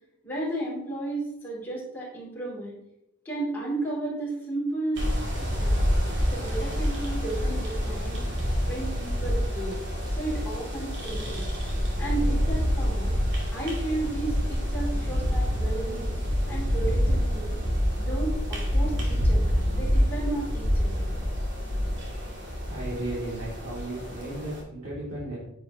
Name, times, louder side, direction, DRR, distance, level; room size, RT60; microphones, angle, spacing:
voice 1, 0.2-2.8 3.2-5.1 5.4-5.7 6.3-8.3 8.6-9.8 10.1-11.5 12.0-13.1 13.5-16.1 16.5-17.6 18.0-21.0, right 2 dB, 10° left, -7 dB, 3.9 m, -33 dB
sound 1, 5.0-24.6, equal, 55° right, 2.3 m, -27 dB
voice 2, 22.6-25.4, right 2 dB, 75° right, -9 dB, 3.3 m, -35 dB
9.6 x 7.7 x 3.3 m, 0.82 s
head